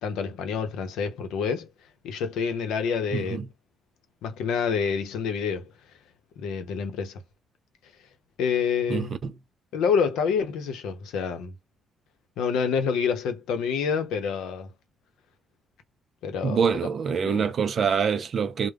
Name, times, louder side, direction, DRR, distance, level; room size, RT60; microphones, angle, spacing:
voice 1, 0.0-1.7 2.0-3.4 4.2-5.7 6.4-7.2 8.4-9.1 9.7-11.5 12.4-14.7 16.2-16.6 17.2-17.5, left 6 dB, 85° left, 0.6 m, -27 dB
voice 2, 3.1-3.5 8.9-9.3 16.4-18.7, right 6 dB, 55° right, 0.4 m, -25 dB
2.2 x 2.0 x 3.3 m
cardioid pair, 90°, 0 cm